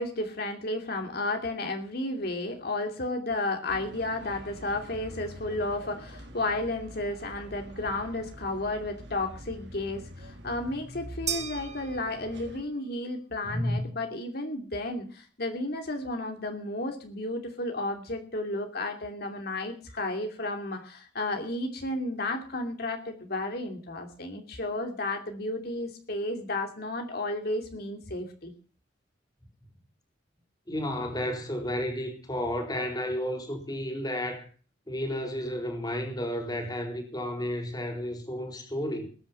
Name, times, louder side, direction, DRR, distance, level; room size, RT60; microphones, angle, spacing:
voice 1, 0.0-28.5, left 2 dB, 55° left, 2.7 m, -33 dB
sound 1, 3.7-12.6, equal, 65° right, 3.1 m, -45 dB
sound 2, 11.3-12.7, right 8 dB, 35° right, 1.3 m, -36 dB
voice 2, 13.4-13.8 30.7-34.5 34.9-39.1, equal, 20° left, 4.1 m, -32 dB
20.5 x 9.8 x 5.6 m
head